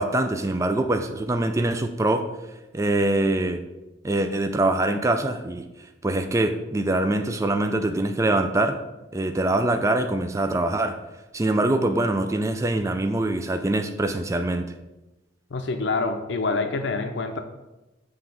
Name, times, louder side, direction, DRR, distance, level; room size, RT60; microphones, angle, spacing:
voice 1, 0.0-2.3 2.7-3.6 4.0-5.7 6.0-8.8 9.1-11.0 11.3-14.7, right 2 dB, 15° right, 7 dB, 0.3 m, -24 dB
voice 2, 15.5-17.4, left 3 dB, 75° left, 7 dB, 0.5 m, -26 dB
7.3 x 3.3 x 5.7 m, 1.0 s
head